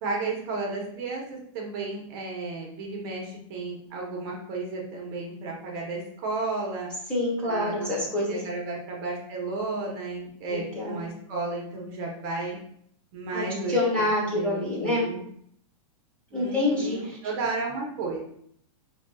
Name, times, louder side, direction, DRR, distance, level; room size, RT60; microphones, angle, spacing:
voice 1, 0.0-6.9 7.4-7.9 8.2-12.6 13.1-15.2 16.3-18.2, right 3 dB, 40° right, -2 dB, 0.9 m, -33 dB
voice 2, 7.1-8.4 10.5-11.0 13.3-15.1 16.3-17.2, left 2 dB, 5° left, -7 dB, 1.0 m, -27 dB
4.4 x 2.7 x 2.3 m, 0.66 s
supercardioid pair, 160°, 18 cm